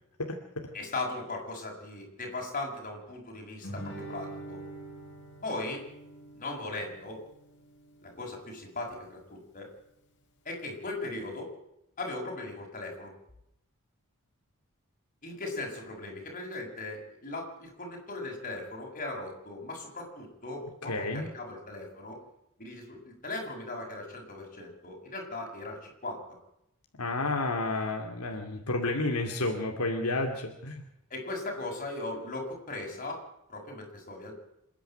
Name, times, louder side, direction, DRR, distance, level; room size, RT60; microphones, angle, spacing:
voice 1, 0.7-4.6 5.4-5.8 6.3-7.2 8.0-9.7 10.5-11.5 12.0-13.1 15.2-22.2 22.6-26.2 31.1-33.2 33.5-34.3, left 2 dB, 35° left, 0 dB, 6.8 m, -38 dB
Guitar, 3.6-8.7, right 1 dB, 55° left, 4.4 m, -45 dB
voice 2, 20.9-21.3 27.0-30.8, left 2 dB, 80° left, 3 dB, 2.5 m, -30 dB
27.5 x 10.5 x 9.0 m, 0.79 s
head